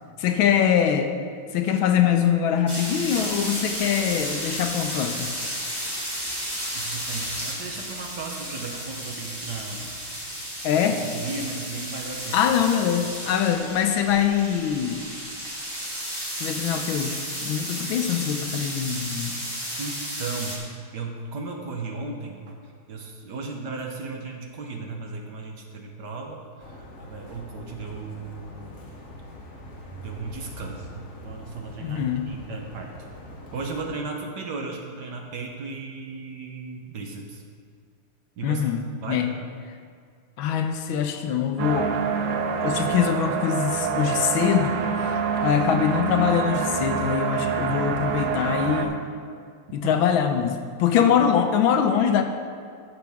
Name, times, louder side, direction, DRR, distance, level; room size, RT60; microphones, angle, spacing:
voice 1, 0.2-1.1 1.5-5.3 10.6-11.0 12.3-15.1 16.4-19.4 31.8-32.3 38.4-39.3 40.4-41.9 42.6-44.8 45.0-49.0 49.7-52.2, left 8 dB, 75° left, 6 dB, 1.4 m, -23 dB
sound 1, 2.7-20.6, equal, 10° right, 2.0 m, -33 dB
voice 2, 6.7-9.9 10.9-12.4 19.8-28.9 30.0-33.0 33.5-37.4 38.4-38.7 39.0-39.3 47.7-47.9 49.8-50.0 51.0-51.1, right 4 dB, 60° right, 2 dB, 1.3 m, -35 dB
sound 2, 26.6-33.9, left 1 dB, 40° left, 1.2 m, -43 dB
sound 3, 41.6-48.9, right 6 dB, 80° right, 1.6 m, -26 dB
13.0 x 7.1 x 3.5 m, 2.2 s
omnidirectional pair, 2.3 m